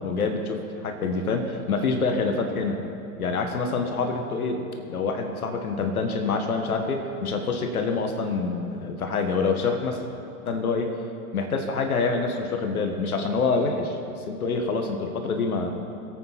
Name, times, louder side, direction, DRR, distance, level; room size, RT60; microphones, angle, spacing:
voice 1, 0.0-2.8 3.2-10.1 10.5-10.9 11.3-14.0 14.3-15.8, left 4 dB, 70° left, 5 dB, 1.6 m, -26 dB
22.0 x 8.6 x 4.3 m, 2.7 s
figure-of-eight pair, 100°, 45 cm